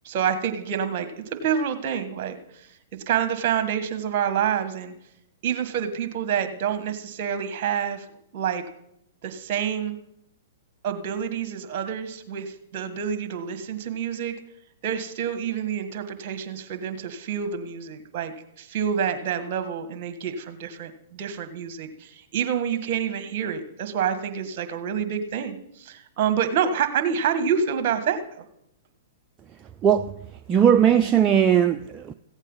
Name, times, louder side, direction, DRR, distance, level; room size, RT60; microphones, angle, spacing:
voice 1, 0.0-2.7 3.1-4.9 5.4-8.1 8.3-8.6 9.2-10.0 10.8-14.3 14.8-28.4, right 8 dB, 45° right, 1.6 m, -27 dB
voice 2, 29.8-30.1 30.5-32.1, right 8 dB, 25° right, 0.4 m, -18 dB
15.5 x 8.2 x 5.6 m
hypercardioid pair, 115°, 0 cm